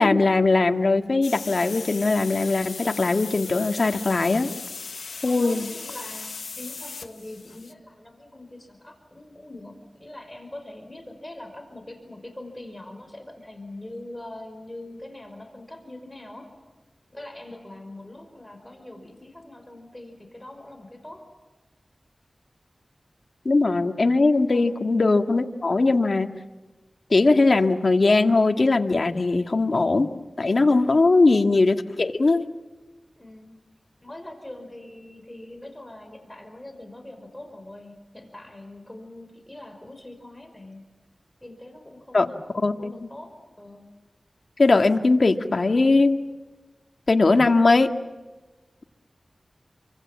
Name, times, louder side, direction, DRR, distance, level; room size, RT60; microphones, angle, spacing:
voice 1, 0.0-4.5 5.2-5.7 23.5-26.3 27.1-30.1 30.4-32.4 42.1-42.3 42.6-42.9 44.6-46.2 47.1-47.9, left 3 dB, 60° left, 6 dB, 1.8 m, -20 dB
sound 1, 1.2-7.7, left 4 dB, 85° left, 1.1 m, -38 dB
voice 2, 5.3-16.5 17.1-21.2 24.5-24.8 31.0-31.3 33.2-33.6 34.0-40.8 41.4-43.9, left 1 dB, 20° left, 5 dB, 5.2 m, -43 dB
29.5 x 25.5 x 7.3 m, 1.2 s
wide cardioid pair, 50°, 0 cm